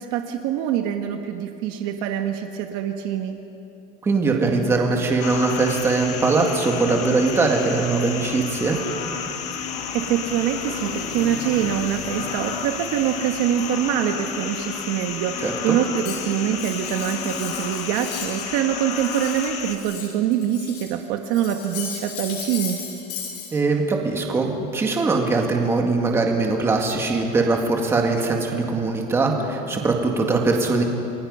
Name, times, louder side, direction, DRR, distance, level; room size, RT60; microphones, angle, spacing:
voice 1, 0.0-3.4 9.9-22.8, right 10 dB, 50° right, 5 dB, 1.3 m, -24 dB
voice 2, 4.0-8.8 15.4-15.8 23.5-30.8, right 3 dB, 15° right, 1 dB, 2.0 m, -21 dB
sound 1, 5.2-19.8, left 6 dB, 35° left, 1.8 m, -31 dB
Cutlery silverware, 16.0-18.5 18.8-20.9 21.3-23.5, left 7 dB, 80° left, 6.9 m, -36 dB
28.5 x 22.0 x 5.5 m, 2.9 s
cardioid pair, 175°, 20 cm